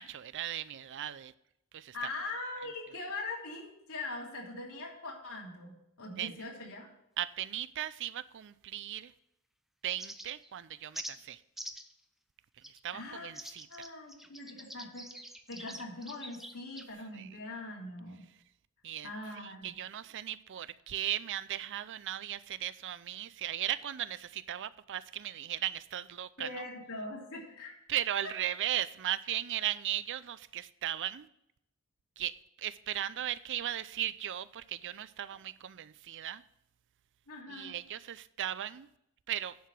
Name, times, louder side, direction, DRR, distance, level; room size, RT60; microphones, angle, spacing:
voice 1, 0.0-1.3 1.7-2.0 6.2-6.3 7.2-9.1 9.8-11.4 12.7-13.7 17.1-17.3 18.8-19.1 19.4-26.5 27.9-31.3 32.2-36.4 37.5-38.9 39.3-39.6, right 11 dB, 55° right, 0.4 m, -37 dB
voice 2, 1.9-5.7 6.0-6.9 12.9-13.3 13.7-15.1 15.5-18.2 19.0-19.7 26.4-27.8 37.3-37.7, left 2 dB, 80° left, 3.0 m, -42 dB
Pied Wagtail, 10.0-10.5 10.9-11.1 11.6-11.9 12.6-12.8 13.3-16.9, equal, ahead, 0.5 m, -45 dB
10.0 x 4.8 x 7.4 m
head